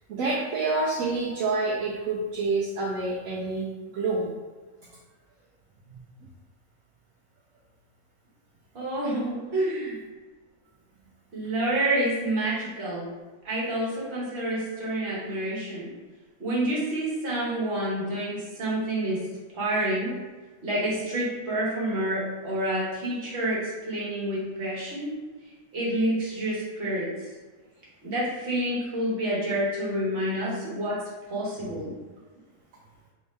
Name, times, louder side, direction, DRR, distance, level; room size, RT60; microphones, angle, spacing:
voice 1, 0.1-4.3 5.9-6.0, right 3 dB, 70° right, -4 dB, 0.9 m, -28 dB
voice 2, 8.7-10.0 11.3-13.1 13.4-15.9 16.4-19.2 19.5-20.1 20.6-25.1 25.7-27.1 28.0-31.0 31.3-31.9, right 1 dB, 45° right, -6 dB, 1.3 m, -28 dB
3.1 x 2.7 x 3.2 m, 1.3 s
omnidirectional pair, 1.6 m